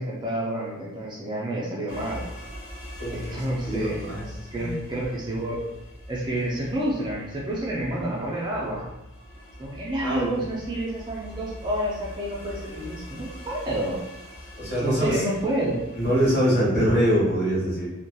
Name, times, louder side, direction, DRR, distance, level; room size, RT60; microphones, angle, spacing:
voice 1, 0.0-2.3 3.1-5.6 6.1-8.9 9.6-14.0 14.8-15.8, right 1 dB, 20° right, -4 dB, 0.3 m, -29 dB
sound 1, 1.9-16.4, left 1 dB, 80° left, 0.6 m, -42 dB
voice 2, 3.0-4.2 4.6-4.8 6.3-6.4 10.0-10.3 14.6-15.2 15.9-17.9, equal, 50° left, -8 dB, 1.2 m, -24 dB
2.7 x 2.1 x 2.2 m, 0.95 s
head